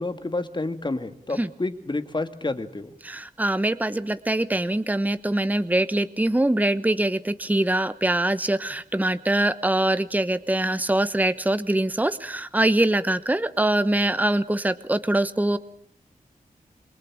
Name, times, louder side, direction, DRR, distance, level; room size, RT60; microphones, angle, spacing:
voice 1, 0.0-2.9, left 2 dB, 30° left, 9 dB, 2.2 m, -29 dB
voice 2, 3.0-15.6, right 1 dB, 10° right, 13 dB, 1.0 m, -23 dB
27.0 x 22.5 x 8.8 m, 0.68 s
wide cardioid pair, 80°, 15 cm